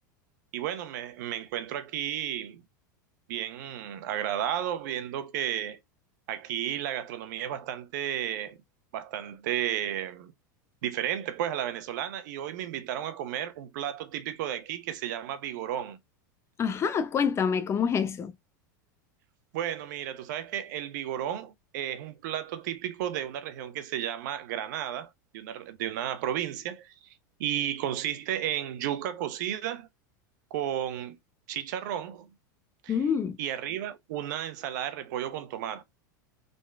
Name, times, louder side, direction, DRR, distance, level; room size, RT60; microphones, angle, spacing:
voice 1, 0.5-2.6 3.3-5.8 6.3-8.6 8.9-10.3 10.8-16.0 19.5-26.9 27.4-29.9 30.5-31.2 31.5-32.3 32.8-33.0 33.4-35.8, right 11 dB, 70° right, 1.0 m, -33 dB
voice 2, 16.6-18.3 32.9-33.4, left 6 dB, 25° left, 0.7 m, -26 dB
3.9 x 3.7 x 3.4 m
hypercardioid pair, 115°, 10 cm